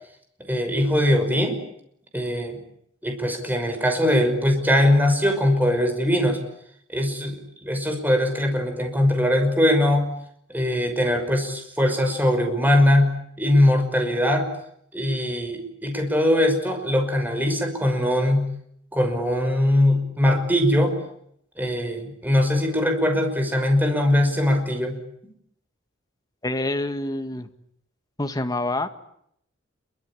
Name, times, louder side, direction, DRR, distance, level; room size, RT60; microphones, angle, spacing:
voice 1, 0.5-1.6 2.1-2.6 3.0-6.4 6.9-10.1 10.5-14.5 14.9-18.5 18.9-20.9 21.6-25.0, left 1 dB, 10° right, 5 dB, 5.8 m, -21 dB
voice 2, 26.4-27.5 28.2-28.9, left 2 dB, 20° left, 8 dB, 1.9 m, -26 dB
27.0 x 23.5 x 8.8 m, 0.72 s
head